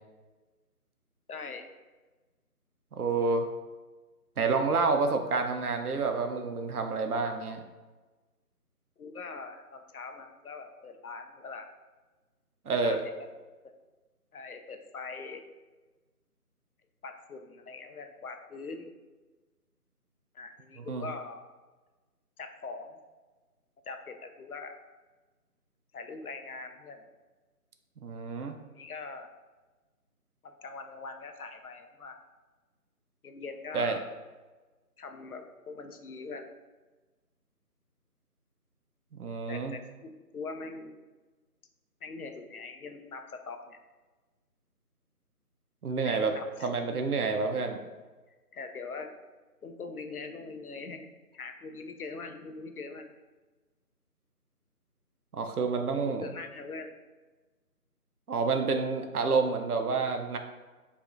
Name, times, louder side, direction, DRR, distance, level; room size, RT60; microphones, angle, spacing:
voice 1, 1.3-1.7 9.0-11.7 12.7-13.1 14.3-15.4 17.0-18.9 20.3-21.4 22.4-23.0 23.9-24.8 25.9-27.0 28.7-29.3 30.4-32.2 33.2-34.1 35.0-36.5 39.5-41.0 42.0-43.8 46.0-46.7 48.5-49.1 49.6-53.1 55.9-56.9, left 4 dB, 70° left, 6 dB, 0.5 m, -42 dB
voice 2, 2.9-3.5 4.4-7.6 12.7-13.0 20.8-21.1 28.0-28.5 33.7-34.0 39.1-39.7 45.8-46.3 46.6-47.8 55.3-56.3 58.3-60.4, right 4 dB, 70° right, 6 dB, 0.6 m, -29 dB
4.9 x 2.4 x 2.5 m, 1.3 s
figure-of-eight pair, 175°, 47 cm